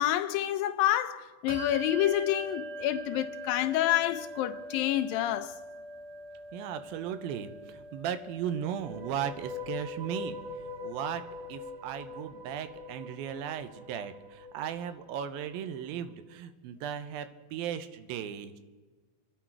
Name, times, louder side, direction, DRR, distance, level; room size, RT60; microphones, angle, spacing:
voice 1, 0.0-5.6, left 13 dB, 80° left, 2.3 m, -28 dB
Bell, 1.5-11.5, right 1 dB, 20° right, 1.2 m, -44 dB
voice 2, 6.5-10.4 10.8-11.2 11.5-18.6, right 9 dB, 85° right, 2.5 m, -36 dB
sound 1, 8.7-15.9, left 3 dB, 65° right, 2.1 m, -43 dB
26.5 x 10.0 x 4.6 m
omnidirectional pair, 4.2 m